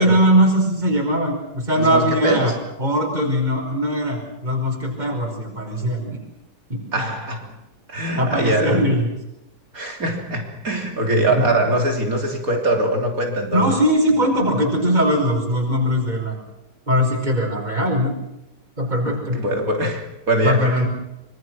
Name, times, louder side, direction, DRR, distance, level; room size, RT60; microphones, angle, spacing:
voice 1, 0.0-2.5 2.8-6.2 6.7-6.8 8.2-9.1 11.3-11.4 13.5-16.4 16.9-18.1 18.8-19.4 20.4-20.9, equal, 25° right, 5.6 m, -20 dB
voice 2, 1.8-2.6 6.9-7.5 7.9-8.9 9.7-13.7 19.0-20.8, right 1 dB, 55° right, 3.7 m, -22 dB
26.0 x 25.0 x 6.3 m
omnidirectional pair, 1.8 m